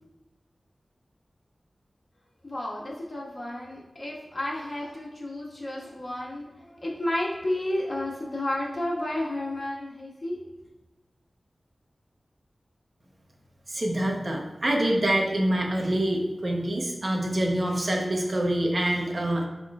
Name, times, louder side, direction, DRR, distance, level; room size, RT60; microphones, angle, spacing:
voice 1, 2.4-10.4, left 1 dB, 45° left, -4 dB, 1.6 m, -32 dB
voice 2, 13.7-19.5, right 1 dB, 50° right, 0 dB, 0.9 m, -26 dB
11.0 x 3.8 x 2.4 m, 1.1 s
wide cardioid pair, 85°, 0 cm